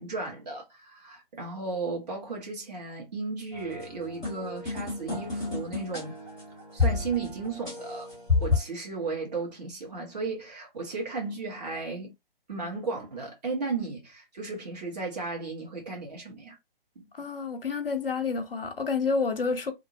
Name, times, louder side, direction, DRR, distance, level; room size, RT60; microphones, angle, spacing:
voice 1, 0.0-6.2 6.7-8.1 8.4-12.1 12.5-16.6 16.9-17.3, right 4 dB, 45° right, 1.2 m, -35 dB
sound 1, 3.5-8.6, left 4 dB, ahead, 0.8 m, -30 dB
voice 2, 17.1-19.7, left 4 dB, 70° left, 0.7 m, -29 dB
2.7 x 2.0 x 2.6 m
figure-of-eight pair, 145°, 29 cm